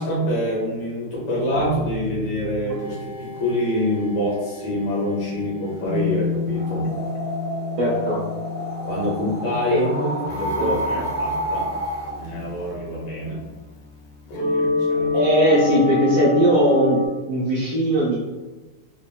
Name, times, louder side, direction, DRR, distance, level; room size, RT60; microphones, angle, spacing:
voice 1, 0.0-6.9 8.8-11.7 12.2-13.4 14.3-15.1, equal, 50° left, -5 dB, 1.0 m, -26 dB
sound 1, 1.5-17.1, left 3 dB, 80° left, 1.5 m, -29 dB
sound 2, 6.5-12.2, equal, 30° right, 0.6 m, -29 dB
voice 2, 7.8-8.2 9.7-9.8 10.6-11.0 15.1-17.0 17.3-18.2, right 1 dB, 90° right, -7 dB, 0.7 m, -20 dB
3.9 x 2.1 x 2.2 m, 1.2 s
omnidirectional pair, 2.4 m